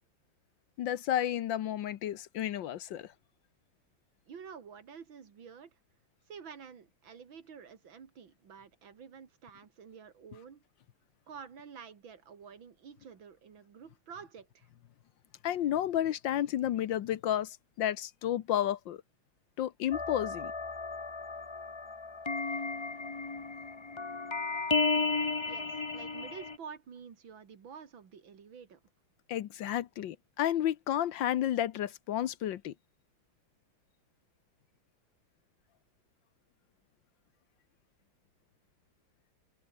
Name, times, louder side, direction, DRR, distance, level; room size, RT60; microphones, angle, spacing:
voice 1, 0.8-3.1 15.4-19.0 19.6-20.5 29.3-32.7, left 11 dB, 70° left, 1.5 m, -31 dB
voice 2, 4.3-5.7 6.3-10.6 11.3-14.7 25.4-28.8, right 6 dB, 70° right, 2.8 m, -49 dB
sound 1, 19.9-26.6, left 3 dB, 35° left, 0.4 m, -34 dB
omnidirectional pair, 2.2 m